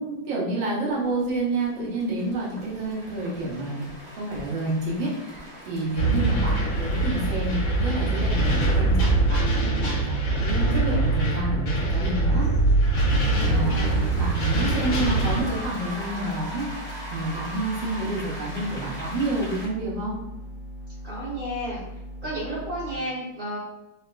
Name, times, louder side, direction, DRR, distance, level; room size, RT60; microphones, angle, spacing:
voice 1, 0.0-3.9 4.2-12.5 13.5-16.9 17.1-20.2, right 2 dB, 85° right, -4 dB, 1.6 m, -29 dB
sound 1, 0.9-19.7, equal, ahead, 0.9 m, -41 dB
sound 2, 6.0-15.4, right 2 dB, 80° left, 1.5 m, -23 dB
voice 2, 13.2-14.1 21.0-21.8 22.2-23.6, equal, 35° right, -12 dB, 1.0 m, -32 dB
sound 3, 14.3-23.0, equal, 65° right, 1.2 m, -40 dB
4.0 x 2.2 x 2.4 m, 0.96 s
omnidirectional pair, 2.0 m